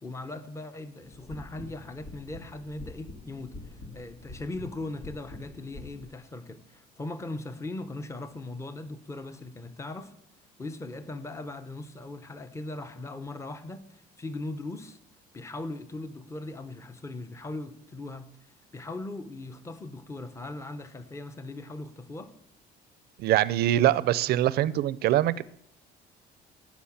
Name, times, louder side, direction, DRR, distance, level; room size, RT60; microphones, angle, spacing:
voice 1, 0.0-10.1 10.6-15.0 15.3-22.4, left 2 dB, 15° left, 0.8 m, -39 dB
sound 1, 1.0-6.0, left 2 dB, 80° left, 3.4 m, -45 dB
voice 2, 23.2-25.4, right 13 dB, 70° right, 0.5 m, -23 dB
14.5 x 6.0 x 7.2 m
cardioid pair, 110°, 17 cm